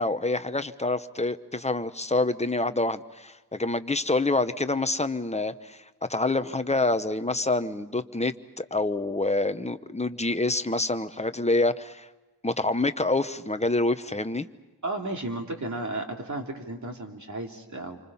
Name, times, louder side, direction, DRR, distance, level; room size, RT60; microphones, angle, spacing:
voice 1, 0.0-5.8 6.1-12.1 12.4-14.5, left 2 dB, 15° left, 10 dB, 0.9 m, -27 dB
voice 2, 14.8-18.0, right 2 dB, 45° right, 2 dB, 3.1 m, -33 dB
29.0 x 25.5 x 5.6 m, 1.2 s
wide cardioid pair, 115°, 40 cm